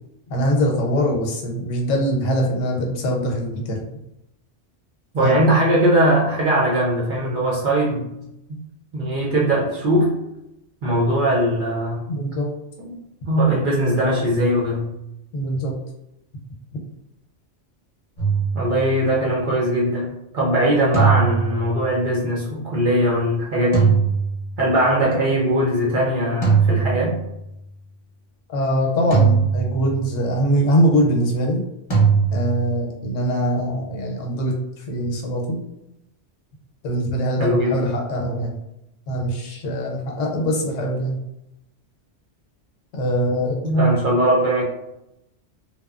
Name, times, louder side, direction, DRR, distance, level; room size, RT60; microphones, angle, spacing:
voice 1, 0.3-3.8 5.2-5.4 12.1-12.5 15.3-15.7 16.7-16.8 18.8-18.9 28.5-31.6 32.3-35.6 36.8-38.6 39.1-41.2 42.9-43.6, equal, 85° left, 1 dB, 1.0 m, -22 dB
voice 2, 5.1-8.1 8.9-10.1 10.8-12.0 12.8-13.0 13.3-14.9 18.5-24.0 24.6-27.2 37.4-37.9 43.6-44.6, right 1 dB, 60° right, -3 dB, 0.6 m, -20 dB
sound 1, 18.2-19.2 20.9-22.1 23.7-24.9 26.4-27.6 29.1-30.3 31.9-32.8, right 6 dB, 30° left, 0.6 m, -21 dB
2.9 x 2.1 x 2.4 m, 0.86 s
omnidirectional pair, 1.3 m